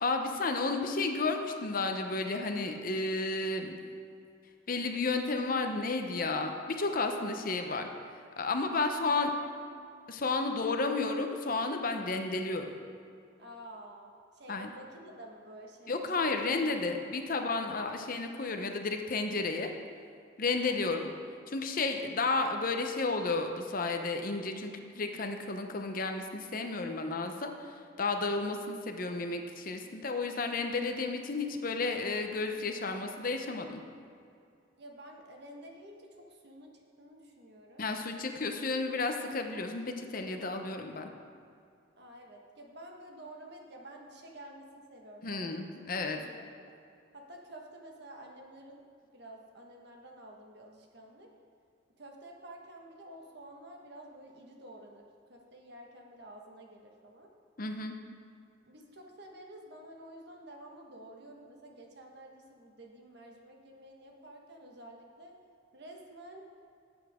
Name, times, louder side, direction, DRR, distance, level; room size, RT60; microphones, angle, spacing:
voice 1, 0.0-3.8 4.7-7.9 8.4-9.3 10.1-12.6 14.5-14.7 15.9-19.7 20.4-21.1 21.5-33.8 37.8-41.1 45.2-46.2 57.6-58.0, left 3 dB, 45° left, 5 dB, 0.8 m, -32 dB
voice 2, 8.7-9.5 13.4-16.2 20.7-21.1 26.8-27.0 34.8-37.8 42.0-45.5 46.0-46.5 47.1-48.8 49.1-51.3 52.0-57.3 58.7-65.4 65.7-66.4, right 1 dB, 55° right, 1 dB, 1.5 m, -50 dB
17.5 x 8.1 x 3.7 m, 2.4 s
head